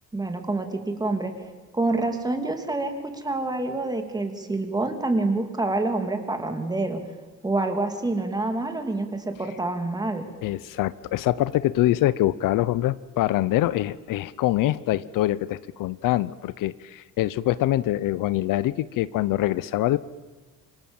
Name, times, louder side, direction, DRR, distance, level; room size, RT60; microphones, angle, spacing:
voice 1, 0.1-1.3 1.7-7.0 7.4-10.3, right 2 dB, 10° right, 5 dB, 3.0 m, -27 dB
voice 2, 10.4-20.0, left 15 dB, 70° left, 17 dB, 0.8 m, -24 dB
27.5 x 24.0 x 7.3 m, 1.3 s
cardioid pair, 135°, 34 cm